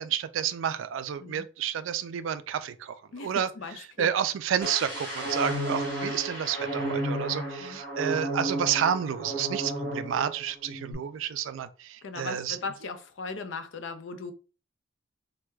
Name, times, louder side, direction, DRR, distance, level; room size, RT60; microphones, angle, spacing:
voice 1, 0.0-3.5 4.0-12.6, right 8 dB, 75° right, 0.3 m, -30 dB
voice 2, 3.1-4.1 7.6-7.8 12.0-14.3, left 4 dB, 70° left, 0.4 m, -38 dB
sound 1, 4.6-10.3 10.6-10.9, right 1 dB, 15° left, 1.2 m, -32 dB
4.5 x 2.2 x 2.2 m
head